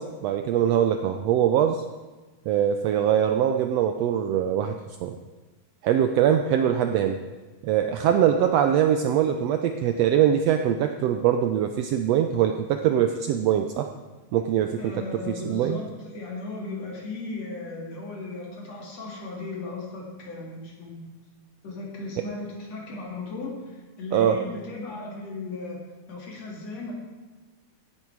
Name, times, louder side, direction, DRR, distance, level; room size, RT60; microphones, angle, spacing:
voice 1, 0.0-1.8 2.5-4.7 5.0-5.2 5.8-7.2 7.6-13.9 14.3-15.8 24.1-24.4, right 9 dB, 80° right, 7 dB, 1.5 m, -22 dB
voice 2, 14.8-21.2 21.6-25.8 26.1-26.9, left 3 dB, 60° left, -2 dB, 3.7 m, -36 dB
15.5 x 10.5 x 4.7 m, 1.3 s
omnidirectional pair, 3.4 m